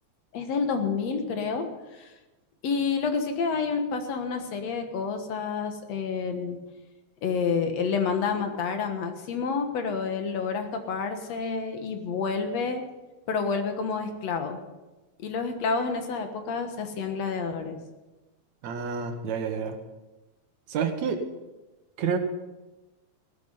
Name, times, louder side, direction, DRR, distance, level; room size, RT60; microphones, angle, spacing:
voice 1, 0.3-1.7 2.0-2.1 2.6-6.6 7.2-12.8 13.3-14.6 15.2-17.8, left 5 dB, 65° left, 6 dB, 2.5 m, -29 dB
voice 2, 18.6-19.8 20.7-21.2 22.0-22.2, right 6 dB, 75° right, 6 dB, 2.5 m, -28 dB
16.5 x 12.5 x 5.6 m, 1.1 s
omnidirectional pair, 3.3 m